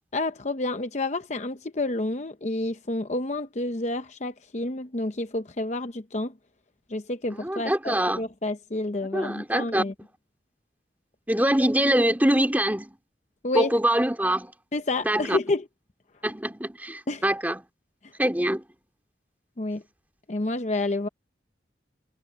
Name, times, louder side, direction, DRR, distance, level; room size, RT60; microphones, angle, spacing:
voice 1, 0.1-6.3 6.9-9.9 13.4-13.8 14.7-15.6 17.1-17.2 19.6-19.8 20.3-21.1, left 2 dB, 40° left, 0.8 m, -29 dB
voice 2, 7.4-8.2 9.1-9.8 11.3-13.0 13.5-14.5 15.0-15.4 16.2-17.6 18.2-18.6, right 1 dB, 10° right, 2.8 m, -24 dB
head